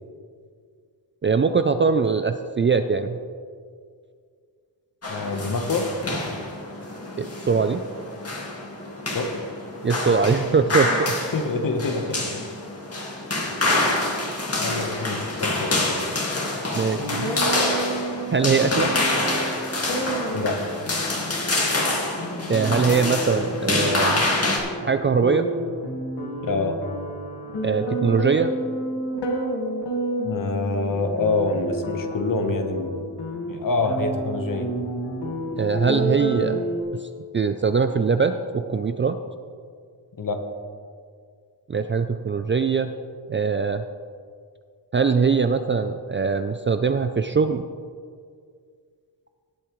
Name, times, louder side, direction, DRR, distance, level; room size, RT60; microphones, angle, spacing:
voice 1, 1.2-3.2 7.2-7.8 9.8-11.1 16.7-17.3 18.3-18.9 22.5-24.3 24.8-25.5 27.6-28.5 35.6-36.6 36.9-37.0 37.3-39.2 41.7-42.9 43.3-43.8 44.9-47.6, right 5 dB, 30° right, 9 dB, 0.3 m, -22 dB
sound 1, 5.0-24.6, left 2 dB, 35° left, 2.0 m, -26 dB
voice 2, 5.1-5.9 9.1-9.3 10.0-10.5 11.3-12.2 14.5-16.0 20.3-20.6 26.4-26.8 30.2-33.0 33.5-34.7 40.2-40.4, left 3 dB, 50° left, 6 dB, 1.2 m, -26 dB
sound 2, 17.0-36.8, right 1 dB, 70° left, 1.8 m, -30 dB
17.5 x 8.5 x 3.1 m, 2.1 s
wide cardioid pair, 120°, 43 cm